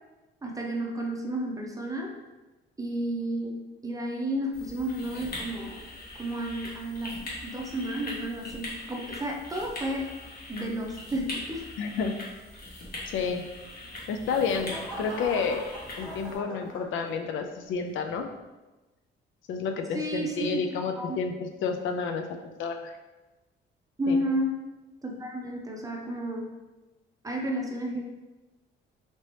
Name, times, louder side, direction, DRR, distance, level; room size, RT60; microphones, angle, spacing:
voice 1, 0.4-2.1 2.8-5.8 6.2-10.1 10.5-11.7 19.9-20.7 21.0-21.2 24.0-24.6 25.0-26.5 27.2-28.0, right 1 dB, 15° right, 0 dB, 0.6 m, -32 dB
sound 1, 4.5-16.4, left 1 dB, 50° left, 1.1 m, -41 dB
voice 2, 11.8-12.1 13.1-13.4 14.1-15.6 16.0-18.3 19.5-23.0 24.1-24.2, left 5 dB, 80° left, 6 dB, 0.4 m, -30 dB
sound 2, 13.8-17.4 18.0-18.3, equal, 5° left, 1.4 m, -42 dB
2.9 x 2.8 x 3.1 m, 1.1 s
cardioid pair, 90°, 20 cm